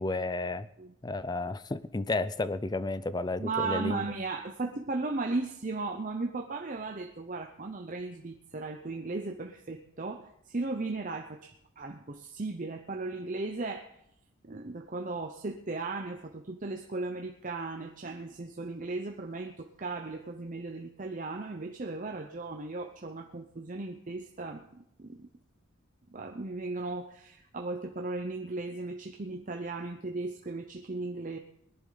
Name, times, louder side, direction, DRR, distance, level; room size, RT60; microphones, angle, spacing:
voice 1, 0.0-0.7 1.0-4.1, left 2 dB, 20° left, 15 dB, 0.4 m, -32 dB
voice 2, 3.4-13.9 14.4-25.3 26.1-31.4, right 3 dB, 40° right, 4 dB, 0.7 m, -36 dB
20.0 x 11.0 x 4.0 m, 0.77 s
head